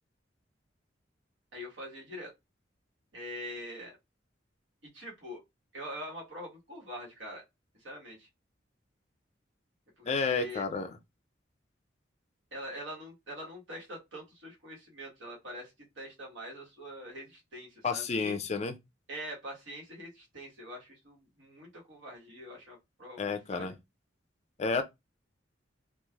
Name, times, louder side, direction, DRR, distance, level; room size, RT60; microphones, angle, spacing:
voice 1, 1.5-2.3 3.1-3.9 4.9-5.4 5.7-7.4 7.8-8.3 10.0-10.6 12.5-18.4 19.1-23.7, equal, 85° right, 1.4 m, -44 dB
voice 2, 10.1-10.9 17.8-18.8 23.2-23.7 24.6-24.8, left 4 dB, 35° left, 0.3 m, -30 dB
3.1 x 2.4 x 2.3 m
head